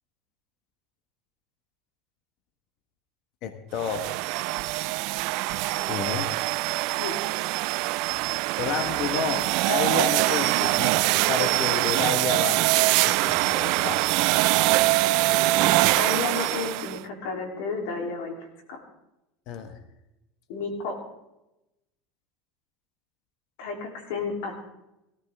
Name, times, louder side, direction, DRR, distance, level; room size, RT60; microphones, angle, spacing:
voice 1, 3.4-4.1 5.9-6.3 8.6-12.6 13.0-14.0 19.5-19.8, left 6 dB, 55° left, 8 dB, 1.5 m, -30 dB
sound 1, 3.8-17.0, right 20 dB, 65° right, 0.4 m, -24 dB
voice 2, 15.4-18.4 18.7-18.8 20.5-21.0 23.6-24.5, left 4 dB, 75° left, 3 dB, 3.5 m, -32 dB
17.5 x 14.5 x 3.7 m, 0.91 s
supercardioid pair, 120°, 0 cm